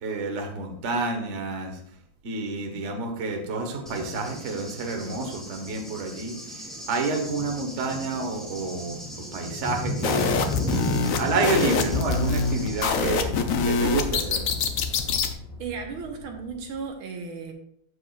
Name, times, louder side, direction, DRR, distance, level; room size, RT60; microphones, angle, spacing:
voice 1, 0.0-1.7 2.2-6.3 6.9-10.3 10.9-13.3 13.6-14.4, right 3 dB, 40° right, 3 dB, 1.2 m, -29 dB
Cricket / Thunder, 3.9-12.9, right 1 dB, ahead, 1.2 m, -35 dB
sound 1, 6.7-16.9, left 2 dB, 60° left, 4.5 m, -41 dB
sound 2, 10.0-15.3, left 5 dB, 85° left, 0.7 m, -25 dB
voice 2, 15.6-17.5, right 5 dB, 75° right, 3 dB, 1.8 m, -35 dB
14.5 x 4.9 x 2.4 m, 0.70 s
omnidirectional pair, 2.4 m